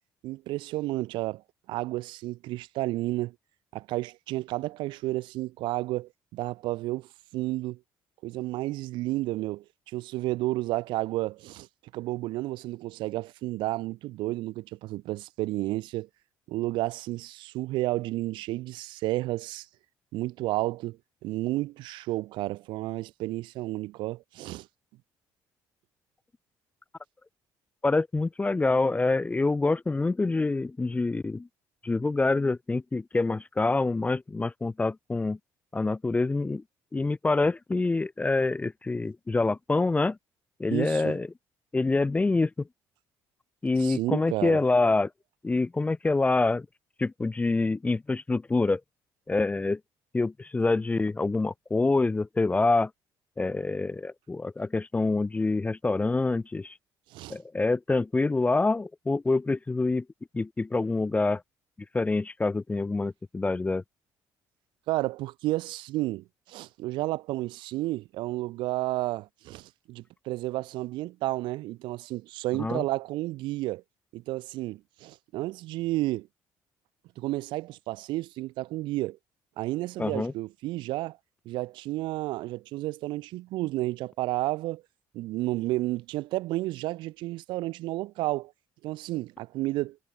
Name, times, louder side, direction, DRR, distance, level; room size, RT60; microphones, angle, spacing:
voice 1, 0.2-1.4 1.7-3.3 3.7-7.8 8.2-11.7 11.9-16.1 16.5-19.7 20.1-21.0 21.2-24.7 40.7-41.1 43.8-44.6 57.1-57.4 64.9-73.8 74.1-76.3 77.2-79.2 79.6-81.2 81.4-84.8 85.1-88.5 88.8-90.0, right 18 dB, 75° right, 1.2 m, -31 dB
voice 2, 27.8-31.5 31.8-35.4 35.7-36.6 36.9-40.2 40.6-41.3 41.7-42.7 43.6-45.1 45.4-46.7 47.0-48.8 49.3-49.8 50.1-52.9 53.4-56.7 57.3-60.0 60.3-61.4 61.9-63.8 72.6-72.8 80.0-80.3, left 3 dB, 15° left, 0.4 m, -26 dB
supercardioid pair, 70°, 8 cm